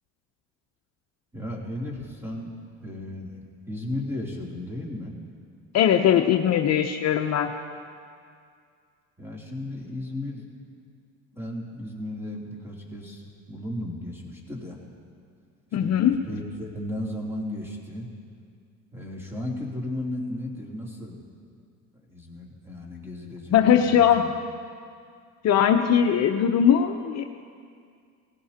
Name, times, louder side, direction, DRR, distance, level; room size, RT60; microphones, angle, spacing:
voice 1, 1.3-2.5 2.8-5.2 9.2-10.4 11.3-13.2 13.5-14.8 15.8-18.1 18.9-21.2 22.1-24.1, left 1 dB, 5° right, -3 dB, 3.1 m, -35 dB
voice 2, 5.7-7.5 15.7-16.2 23.5-24.3 25.4-27.2, left 9 dB, 50° left, 5 dB, 0.7 m, -20 dB
18.5 x 16.0 x 2.9 m, 2.2 s
supercardioid pair, 100°, 33 cm